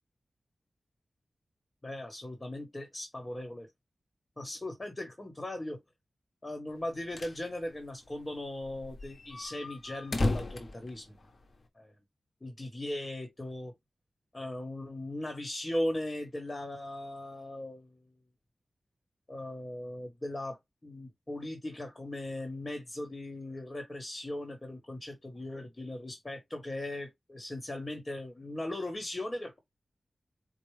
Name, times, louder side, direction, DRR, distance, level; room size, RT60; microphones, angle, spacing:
voice 1, 1.8-3.7 4.4-5.8 6.4-11.2 11.8-11.9 12.4-13.7 14.3-18.1 19.3-29.6, left 1 dB, 30° left, 1.5 m, -38 dB
sound 1, 6.8-7.4 7.8-7.9 8.1-8.2 8.6-11.6, left 2 dB, 55° left, 1.1 m, -34 dB
4.6 x 2.5 x 3.3 m
cardioid pair, 50°, 0 cm